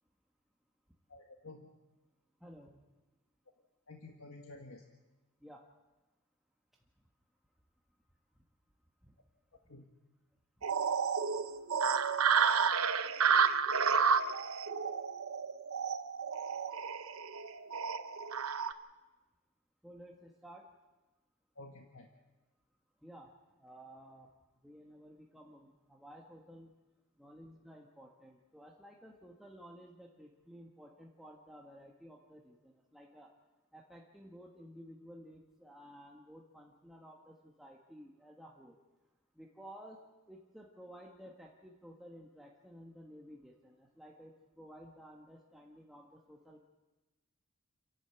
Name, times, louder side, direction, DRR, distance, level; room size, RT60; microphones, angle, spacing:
voice 1, 1.1-1.7 3.9-4.8 9.7-9.8 21.5-22.1, left 2 dB, 75° left, 2 dB, 1.6 m, -51 dB
voice 2, 2.4-2.8 5.4-5.6 9.0-9.1 19.8-20.7 23.0-23.3 23.6-24.3 24.6-26.7 27.2-33.3 33.7-38.8 39.3-40.0 40.3-46.7, equal, ahead, -2 dB, 1.5 m, -54 dB
sound 1, 10.6-18.7, right 6 dB, 80° right, 0.9 m, -31 dB
29.5 x 11.5 x 7.9 m, 1.2 s
head